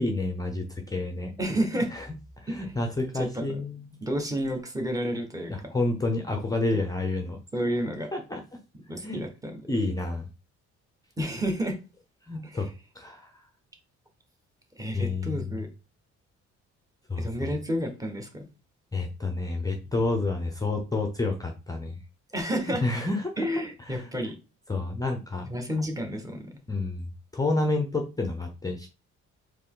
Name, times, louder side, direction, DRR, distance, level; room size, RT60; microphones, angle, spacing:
voice 1, 0.0-1.3 1.7-2.1 2.4-4.0 5.5-7.4 8.1-8.6 9.0-9.2 9.7-10.3 12.2-12.7 12.9-13.4 14.9-15.6 17.1-17.5 18.9-22.0 22.7-23.5 23.9-24.1 24.7-25.5 26.7-27.1 27.3-28.9, left 2 dB, 10° left, 4 dB, 0.8 m, -29 dB
voice 2, 1.4-1.9 2.5-2.7 3.1-3.5 4.0-5.5 6.7-6.8 7.5-8.1 8.9-9.6 11.2-11.8 12.4-12.7 14.8-15.7 17.2-18.4 22.3-22.8 23.4-24.3 25.5-26.5, equal, 10° right, 4 dB, 1.3 m, -30 dB
4.3 x 3.1 x 3.8 m, 0.29 s
cardioid pair, 90°, 30 cm